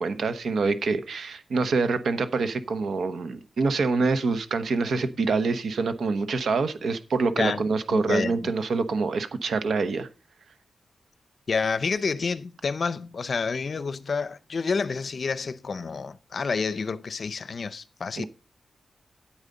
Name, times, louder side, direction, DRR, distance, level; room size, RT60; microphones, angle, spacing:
voice 1, 0.0-10.1 18.2-18.3, right 4 dB, 75° right, 1.0 m, -26 dB
voice 2, 7.9-8.5 11.5-18.2, left 5 dB, 50° left, 0.6 m, -29 dB
9.0 x 8.9 x 4.0 m
wide cardioid pair, 140°, 0 cm